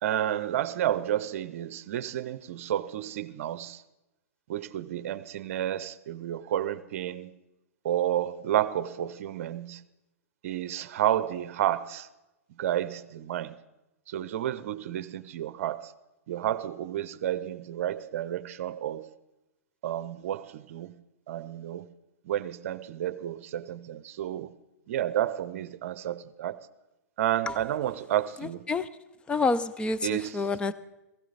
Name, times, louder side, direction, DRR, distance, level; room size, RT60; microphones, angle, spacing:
voice 1, 0.0-3.8 4.5-7.3 7.8-9.8 10.4-12.1 12.6-13.5 14.1-15.9 16.3-19.1 19.8-20.9 21.3-21.9 22.3-24.5 24.9-26.6 27.2-28.6 30.0-30.4, right 11 dB, 55° right, 0.7 m, -31 dB
voice 2, 29.3-30.7, left 3 dB, 10° left, 0.6 m, -27 dB
17.0 x 15.5 x 4.1 m
hypercardioid pair, 115°, 9 cm